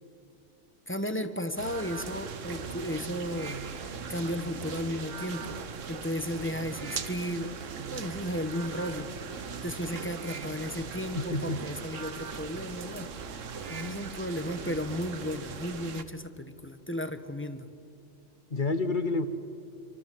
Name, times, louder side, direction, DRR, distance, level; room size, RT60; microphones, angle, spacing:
voice 1, 0.9-3.6 4.1-5.5 5.9-7.5 7.9-9.1 9.6-13.1 13.7-17.7, left 1 dB, 10° left, 9 dB, 1.2 m, -34 dB
sound 1, 1.6-15.4, right 6 dB, 55° right, 1.1 m, -44 dB
sound 2, 1.6-16.0, right 6 dB, 75° right, 1.5 m, -41 dB
voice 2, 11.1-11.6 18.5-19.3, left 3 dB, 40° left, 10 dB, 1.2 m, -29 dB
27.5 x 24.5 x 7.8 m, 2.6 s
omnidirectional pair, 1.3 m